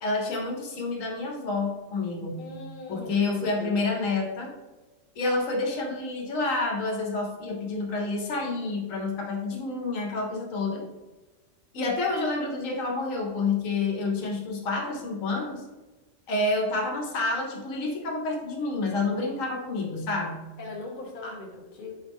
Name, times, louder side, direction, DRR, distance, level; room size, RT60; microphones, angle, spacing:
voice 1, 0.0-2.5 2.9-4.5 5.2-10.8 11.7-15.6 16.3-20.4 21.2-21.3, left 3 dB, 85° left, 0 dB, 1.2 m, -29 dB
voice 2, 2.4-3.8 20.6-21.9, left 2 dB, 45° left, -1 dB, 1.0 m, -40 dB
4.7 x 3.1 x 3.5 m, 1.1 s
omnidirectional pair, 1.3 m